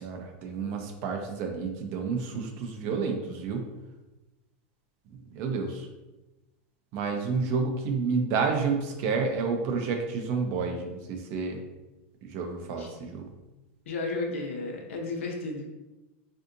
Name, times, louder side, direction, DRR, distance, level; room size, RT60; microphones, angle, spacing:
voice 1, 0.0-3.6 5.3-5.9 6.9-11.6 12.2-13.3, right 5 dB, 30° right, 3 dB, 0.4 m, -30 dB
voice 2, 13.9-15.7, left 3 dB, 80° left, 2 dB, 0.7 m, -33 dB
3.6 x 2.6 x 2.5 m, 1.0 s
supercardioid pair, 180°, 7 cm